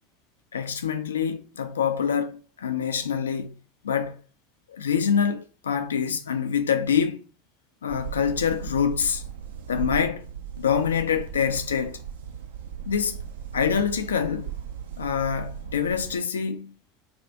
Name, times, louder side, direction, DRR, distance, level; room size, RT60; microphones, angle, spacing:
voice 1, 0.5-3.6 3.8-4.2 4.7-7.2 7.8-9.2 9.7-10.3 10.6-12.0 12.9-13.2 13.5-14.5 15.0-16.7, left 7 dB, 75° left, 0.4 m, -25 dB
sound 1, 7.9-16.2, right 8 dB, 70° right, 0.3 m, -37 dB
3.4 x 2.4 x 4.0 m
figure-of-eight pair, 75°, 0 cm